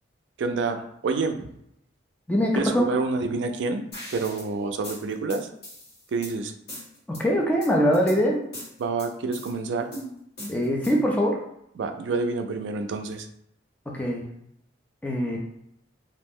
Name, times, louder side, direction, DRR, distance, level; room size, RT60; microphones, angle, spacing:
voice 1, 0.4-1.5 2.5-3.9 4.1-5.5 6.1-6.5 8.8-9.9 11.8-13.3, right 4 dB, 70° right, 6 dB, 0.3 m, -28 dB
voice 2, 2.3-2.9 7.1-8.4 10.5-11.4 13.9-14.2 15.0-15.4, equal, 10° left, -1 dB, 0.4 m, -23 dB
sound 1, 3.9-4.5 4.8-6.3 6.7-7.2 7.6-8.2 8.5-9.5 9.9-11.1, equal, 60° left, 1.3 m, -40 dB
2.5 x 2.0 x 3.5 m, 0.76 s
head